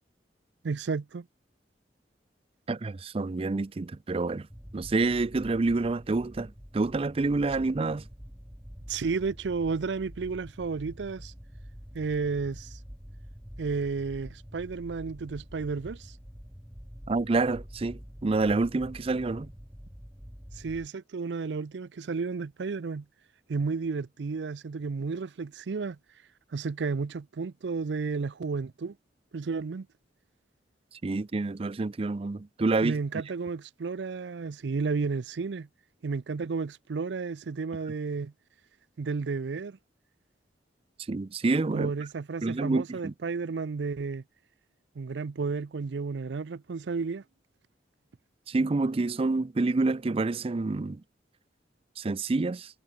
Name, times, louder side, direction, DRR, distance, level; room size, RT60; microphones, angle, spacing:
voice 1, 0.6-1.3 8.9-11.3 11.9-12.8 13.6-16.1 20.5-23.1 23.5-26.0 26.5-28.9 29.3-29.9 32.8-35.7 36.0-38.3 39.0-39.8 41.7-44.2 45.0-47.2, right 4 dB, 85° right, 0.5 m, -32 dB
voice 2, 2.7-4.5 4.7-8.0 17.1-19.5 31.0-32.9 41.1-41.9 42.4-43.1 48.5-51.0 52.0-52.7, right 3 dB, 35° right, 0.4 m, -28 dB
sound 1, 4.5-20.9, equal, 5° right, 1.6 m, -47 dB
head